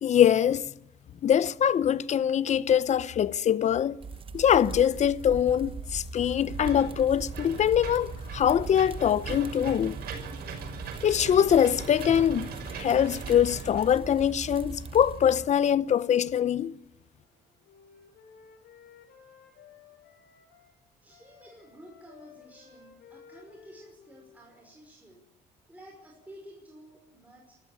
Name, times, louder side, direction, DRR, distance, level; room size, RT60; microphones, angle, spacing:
voice 1, 0.0-0.7 1.2-4.0 4.3-10.0 11.0-16.8, left 9 dB, 45° left, 0.7 m, -23 dB
sound 1, 4.0-15.2, right 6 dB, 30° right, 0.9 m, -42 dB
Engine / Mechanisms, 6.5-15.4, right 4 dB, 70° right, 6.1 m, -40 dB
Wind instrument woodwind instrument, 17.2-20.7 21.1-24.8, left 6 dB, 85° left, 6.8 m, -55 dB
voice 2, 21.0-25.2 25.7-27.6, equal, 10° right, 5.4 m, -51 dB
25.0 x 14.5 x 8.7 m
cardioid pair, 110°, 17 cm